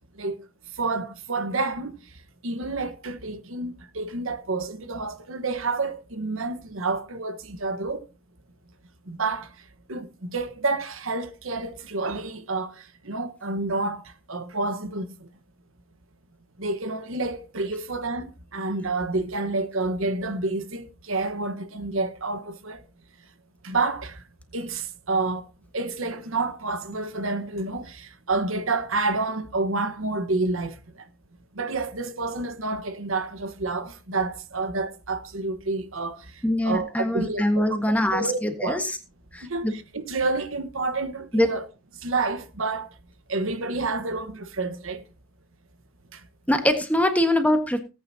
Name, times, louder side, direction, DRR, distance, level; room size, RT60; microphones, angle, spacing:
voice 1, 0.8-1.9 2.4-8.1 9.1-9.5 9.9-15.3 16.6-22.8 23.6-24.2 24.5-25.5 25.7-31.1 31.5-37.8 38.1-38.8 39.4-41.6 42.0-42.9 43.3-45.0 46.1-46.2, right 3 dB, 80° right, 1.3 m, -29 dB
voice 2, 36.4-39.0 39.3-39.7 41.3-41.5 46.5-47.8, left 1 dB, 5° left, 1.4 m, -23 dB
18.5 x 9.0 x 2.8 m
head